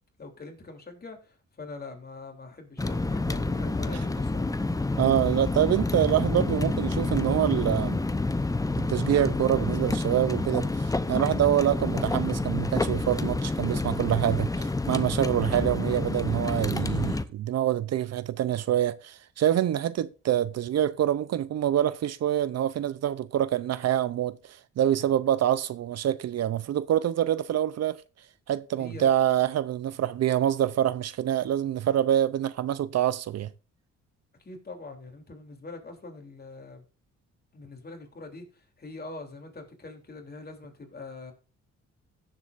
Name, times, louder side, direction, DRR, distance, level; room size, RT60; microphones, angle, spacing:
voice 1, 0.2-4.5 28.8-29.1 34.4-36.8 37.5-41.3, left 3 dB, 30° left, 3.3 m, -43 dB
sound 1, 2.8-17.2, left 2 dB, 10° left, 0.8 m, -28 dB
voice 2, 5.0-8.0 8.8-28.0 28.5-33.5, right 11 dB, 60° right, 0.6 m, -26 dB
16.5 x 7.5 x 2.6 m
cardioid pair, 90°, 30 cm